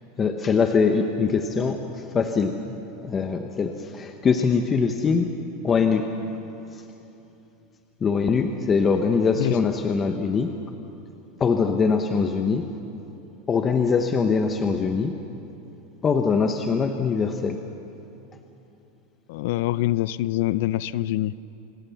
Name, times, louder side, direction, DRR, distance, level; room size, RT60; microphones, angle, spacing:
voice 1, 0.2-2.7 3.0-5.3 5.6-6.1 8.0-10.5 11.4-12.7 13.5-15.1 16.0-17.6, left 5 dB, 20° left, 5 dB, 1.0 m, -22 dB
voice 2, 19.3-21.3, left 15 dB, 65° left, 18 dB, 0.5 m, -25 dB
26.5 x 20.0 x 7.1 m, 2.9 s
supercardioid pair, 155°, 0 cm